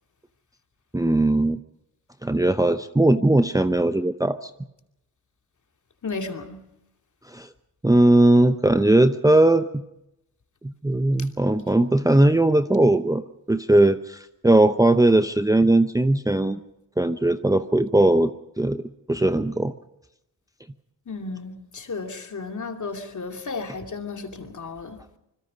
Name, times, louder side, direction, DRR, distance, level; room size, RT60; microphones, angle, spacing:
voice 1, 0.9-1.6 2.2-4.5 7.3-7.5 7.8-9.7 10.6-16.6 17.0-18.3 18.6-18.8 19.1-19.7, right 1 dB, 10° right, 10 dB, 0.8 m, -19 dB
voice 2, 6.0-6.6 11.2-11.3 21.1-25.0, left 4 dB, 50° left, 4 dB, 2.7 m, -34 dB
25.5 x 21.5 x 5.3 m, 0.85 s
supercardioid pair, 55°, 39 cm